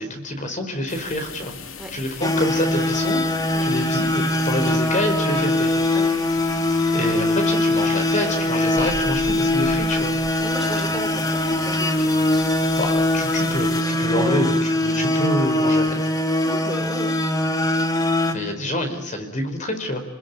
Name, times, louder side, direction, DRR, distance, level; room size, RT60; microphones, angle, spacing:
voice 1, 0.0-1.6 1.9-3.2 3.6-5.8 6.9-10.2 12.8-16.0 18.3-20.0, left 1 dB, 35° left, 6 dB, 4.9 m, -27 dB
sound 1, 0.9-13.8, left 5 dB, 70° left, 2.5 m, -37 dB
sound 2, 2.2-18.3, left 1 dB, 20° left, 2.0 m, -22 dB
voice 2, 10.4-12.7 14.1-14.5 14.9-15.0 16.4-17.1, equal, ahead, 3 dB, 4.0 m, -33 dB
29.0 x 20.5 x 9.7 m, 0.86 s
head